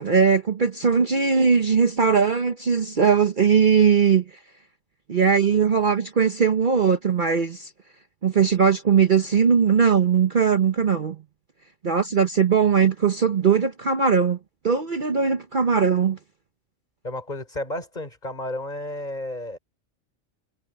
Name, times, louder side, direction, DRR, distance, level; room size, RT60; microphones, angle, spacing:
voice 1, 0.0-4.2 5.1-7.7 8.2-11.2 11.8-14.4 14.6-16.2, right 6 dB, 45° right, 1.0 m, -20 dB
voice 2, 17.0-19.6, left 1 dB, 35° left, 4.3 m, -32 dB
omnidirectional pair, 1.3 m